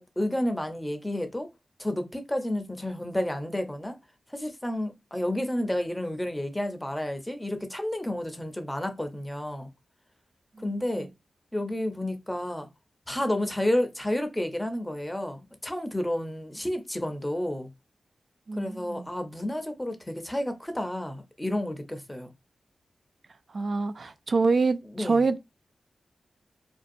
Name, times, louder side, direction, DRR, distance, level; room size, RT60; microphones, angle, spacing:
voice 1, 0.0-1.5 1.8-4.0 4.3-9.7 10.6-11.1 11.5-12.7 13.1-17.7 18.6-22.3 24.9-25.2, left 1 dB, 10° left, 0.6 m, -31 dB
voice 2, 10.6-11.1 18.5-19.1 23.5-25.4, right 4 dB, 60° right, 0.3 m, -26 dB
2.5 x 2.3 x 2.5 m
cardioid pair, 60°, 0 cm